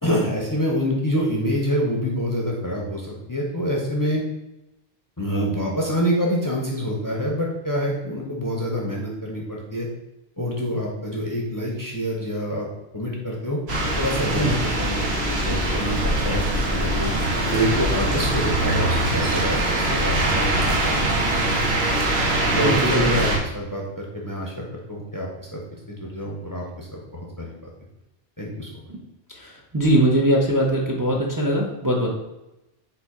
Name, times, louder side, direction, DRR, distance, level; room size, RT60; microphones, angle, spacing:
voice 1, 0.0-4.2 5.2-9.9 10.4-12.7 12.9-13.6 14.0-17.1 17.5-20.9 21.4-21.6 22.5-24.6 24.9-25.6 25.9-27.5 28.4-28.9, equal, 25° left, -2 dB, 0.6 m, -26 dB
sound 1, 13.7-23.4, right 1 dB, 80° right, 1.2 m, -22 dB
voice 2, 14.4-14.7 22.5-23.0 28.9-29.0 29.3-32.1, right 1 dB, 25° right, -2 dB, 0.6 m, -21 dB
4.1 x 2.8 x 4.7 m, 0.94 s
omnidirectional pair, 1.1 m